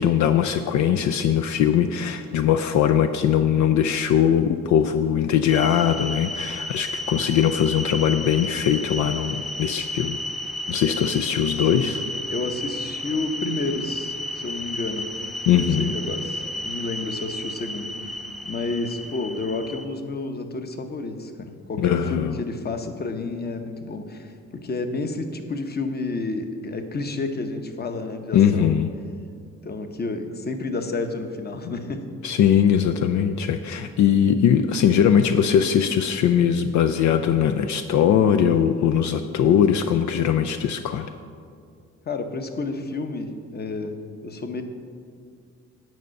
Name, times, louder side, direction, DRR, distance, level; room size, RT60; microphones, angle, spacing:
voice 1, 0.0-10.2 10.7-12.0 15.5-15.9 21.8-22.4 28.3-28.9 32.2-41.1, left 9 dB, 70° left, 8 dB, 0.5 m, -20 dB
sound 1, 5.5-19.8, left 1 dB, ahead, 0.7 m, -32 dB
voice 2, 12.3-15.1 15.8-18.2 18.4-28.7 29.6-32.0 42.0-43.9 44.2-44.6, left 3 dB, 35° left, 7 dB, 0.9 m, -30 dB
9.4 x 5.5 x 6.3 m, 2.2 s
cardioid pair, 90°, 30 cm